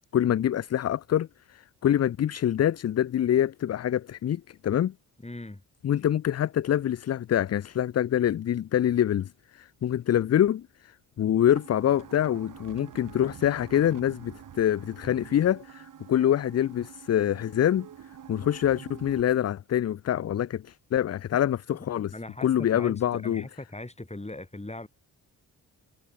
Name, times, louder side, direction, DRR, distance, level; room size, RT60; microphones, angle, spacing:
voice 1, 0.1-4.9 5.8-10.9 11.2-17.9 18.3-22.1 22.4-23.4, left 10 dB, 35° left, 0.5 m, -25 dB
voice 2, 5.2-5.6 21.7-21.8 22.1-24.9, left 2 dB, 15° left, 4.3 m, -39 dB
sound 1, 11.5-19.2, right 9 dB, 45° right, 1.2 m, -47 dB
hypercardioid pair, 40°, 44 cm